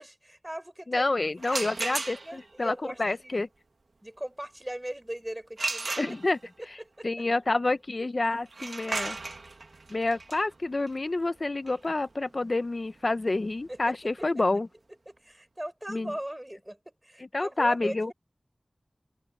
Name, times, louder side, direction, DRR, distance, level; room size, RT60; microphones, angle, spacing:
voice 1, 0.0-1.2 1.5-3.4 4.0-5.9 7.0-7.3 13.7-13.8 14.2-14.3 15.1-18.1, right 1 dB, 15° right, 5.9 m, -39 dB
voice 2, 0.9-3.5 6.0-6.4 7.0-9.2 9.9-14.7 15.9-16.1 17.3-18.1, left 2 dB, 55° left, 0.7 m, -28 dB
sound 1, 1.4-2.5 5.6-6.6 8.5-14.1, right 3 dB, 80° right, 1.5 m, -36 dB
open air
wide cardioid pair, 65°, 0 cm